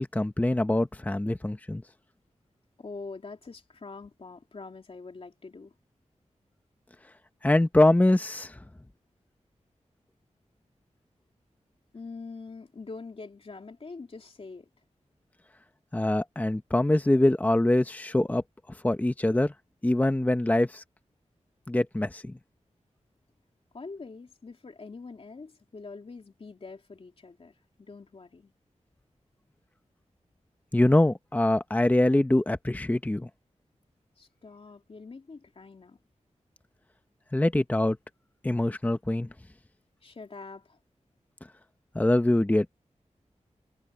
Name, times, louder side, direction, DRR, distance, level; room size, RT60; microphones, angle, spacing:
voice 1, 0.0-1.8 7.4-8.5 15.9-18.4 18.8-19.5 19.8-20.8 21.7-22.3 30.7-33.3 37.3-38.0 38.4-39.3 41.9-42.7, left 1 dB, 15° left, 0.9 m, -24 dB
voice 2, 2.8-5.7 11.9-14.7 23.7-28.5 34.2-36.0 40.0-40.8, left 4 dB, 50° left, 2.8 m, -44 dB
wide cardioid pair, 115°, 12 cm